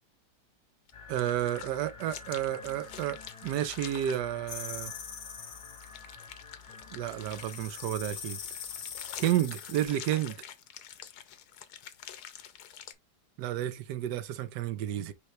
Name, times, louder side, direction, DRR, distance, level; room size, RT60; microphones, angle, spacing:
sound 1, 0.9-4.2 5.8-12.9, left 10 dB, 70° left, 1.1 m, -47 dB
sound 2, 0.9-10.4, left 4 dB, 20° left, 1.0 m, -50 dB
voice 1, 1.1-4.9 6.9-8.4 9.2-10.3 13.4-15.1, right 12 dB, 75° right, 1.3 m, -31 dB
sound 3, 4.5-6.0 7.3-9.9, left 7 dB, 55° left, 0.8 m, -42 dB
5.5 x 3.1 x 3.1 m
omnidirectional pair, 1.9 m